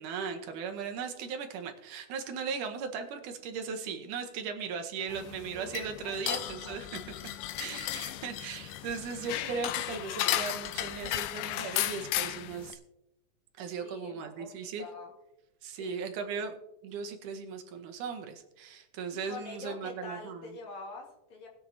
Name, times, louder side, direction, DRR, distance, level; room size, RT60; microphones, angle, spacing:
voice 1, 0.0-7.0 7.6-12.8 13.6-14.9 15.6-16.6 16.8-20.6, right 6 dB, 80° right, 5 dB, 2.4 m, -38 dB
sound 1, 5.1-12.7, left 13 dB, 90° left, 2.2 m, -35 dB
voice 2, 6.0-6.7 7.5-8.2 13.8-15.1 15.7-16.1 19.1-21.5, left 3 dB, 65° left, 0 dB, 3.0 m, -46 dB
20.0 x 7.5 x 2.8 m, 0.89 s
omnidirectional pair, 3.7 m